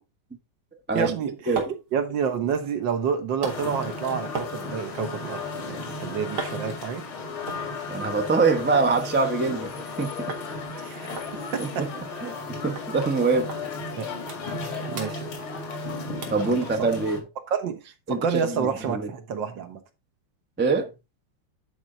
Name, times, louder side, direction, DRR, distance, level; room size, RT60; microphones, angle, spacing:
voice 1, 0.9-1.5 1.9-7.0 10.8-11.8 14.0-14.1 14.9-15.3 16.4-16.9 17.5-17.8 18.1-19.8, right 6 dB, 65° right, 1.7 m, -29 dB
sound 1, 1.0-8.9 9.2-9.9 10.3-10.5 10.8-10.9 11.2-12.5 12.8-12.9 13.5-13.6 14.0-14.7 14.9-15.8 16.2-16.5 17.0-17.1, right 4 dB, 80° right, 2.6 m, -39 dB
sound 2, 3.4-17.2, left 3 dB, 80° left, 2.7 m, -35 dB
voice 2, 7.9-9.7 10.0-10.1 11.6-11.9 12.2-13.5 16.3-17.2 18.1-19.1 20.6-20.9, right 4 dB, 10° right, 0.5 m, -24 dB
10.5 x 4.5 x 3.8 m
omnidirectional pair, 2.3 m